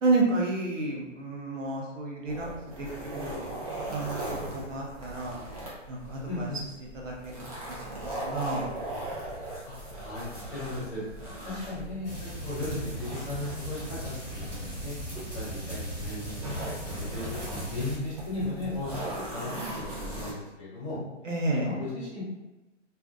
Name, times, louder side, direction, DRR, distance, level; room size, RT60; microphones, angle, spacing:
voice 1, 0.0-2.5 2.8-3.5 3.9-5.4 5.9-6.5 7.0-8.7 21.2-21.7, right 2 dB, 75° right, -2 dB, 0.8 m, -31 dB
sound 1, 2.3-20.3, right 1 dB, 30° right, 0.5 m, -39 dB
voice 2, 6.2-6.6 9.7-11.0 11.4-15.0 15.3-18.9 19.1-21.0 21.5-22.2, left 2 dB, 25° left, -11 dB, 1.0 m, -36 dB
sound 2, 12.0-18.0, right 1 dB, 5° right, 1.0 m, -38 dB
2.5 x 2.1 x 2.4 m, 1.0 s
hypercardioid pair, 160°, 38 cm